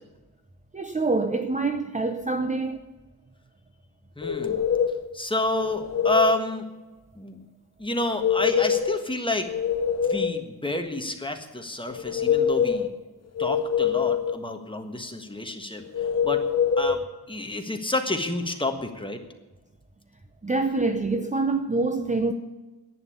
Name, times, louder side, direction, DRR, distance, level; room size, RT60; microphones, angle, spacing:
voice 1, 0.7-2.9 20.4-22.3, right 3 dB, 20° right, 0.7 m, -25 dB
sound 1, 4.2-5.1 5.6-6.4 8.0-9.0 9.4-10.5 11.9-12.9 13.4-14.4 15.9-17.0, left 7 dB, 40° left, 1.0 m, -24 dB
voice 2, 4.2-4.6 5.1-6.7 7.2-7.4 7.8-9.5 10.0-12.9 13.4-15.8 16.2-16.4 16.8-17.0 17.3-19.2, left 2 dB, 15° left, 1.5 m, -29 dB
11.0 x 9.3 x 9.9 m
wide cardioid pair, 130°, 39 cm